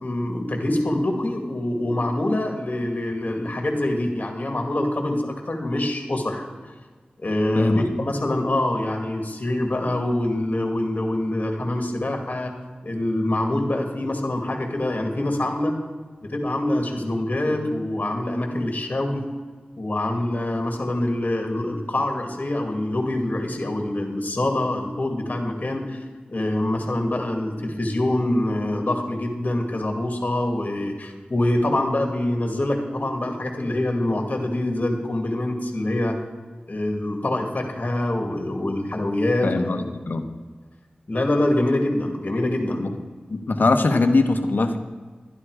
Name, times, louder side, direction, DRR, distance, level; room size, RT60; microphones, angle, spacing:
voice 1, 0.0-6.4 7.2-12.5 12.8-15.8 16.2-19.2 19.8-26.0 26.3-36.2 36.7-39.5 39.8-39.9 41.1-42.8, left 1 dB, 50° left, 3 dB, 2.2 m, -25 dB
voice 2, 7.5-7.9 39.4-40.3 42.8-42.9 43.3-44.8, left 3 dB, 70° left, 7 dB, 1.1 m, -21 dB
11.5 x 11.5 x 4.9 m, 1.4 s
cardioid pair, 45°, 3 cm